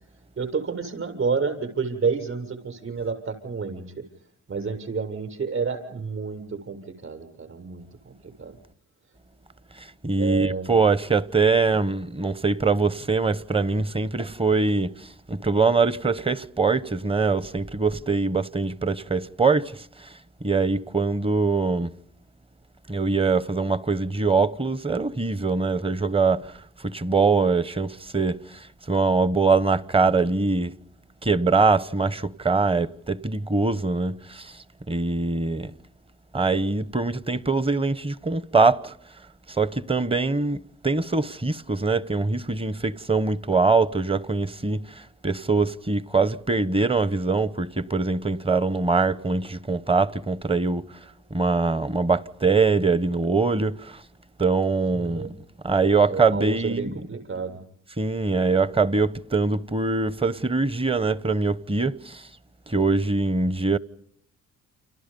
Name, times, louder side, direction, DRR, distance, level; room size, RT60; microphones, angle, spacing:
voice 1, 0.4-4.0 4.5-8.5 10.2-10.8 54.9-55.3 56.1-57.6, right 5 dB, 45° right, 7.3 m, -30 dB
voice 2, 10.0-14.9 15.3-19.7 20.4-21.9 22.9-26.5 26.8-28.4 28.9-30.7 31.2-34.5 34.9-35.7 36.3-38.9 39.6-44.8 45.2-50.9 51.3-54.0 54.4-55.3 55.6-56.9 58.0-62.2 62.7-63.8, right 4 dB, 20° right, 0.9 m, -23 dB
30.0 x 27.5 x 5.4 m
cardioid pair, 90°, 30 cm